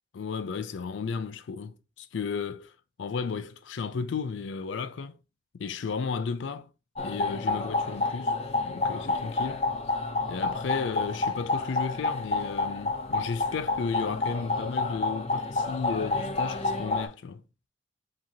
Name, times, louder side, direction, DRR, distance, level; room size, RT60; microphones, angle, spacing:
voice 1, 0.1-2.7 3.0-5.2 5.5-6.7 7.0-8.4 8.6-9.7 10.3-17.4, left 5 dB, 85° left, 0.4 m, -34 dB
sound 1, 7.0-17.1, left 3 dB, 35° left, 0.5 m, -29 dB
4.9 x 3.0 x 2.7 m
head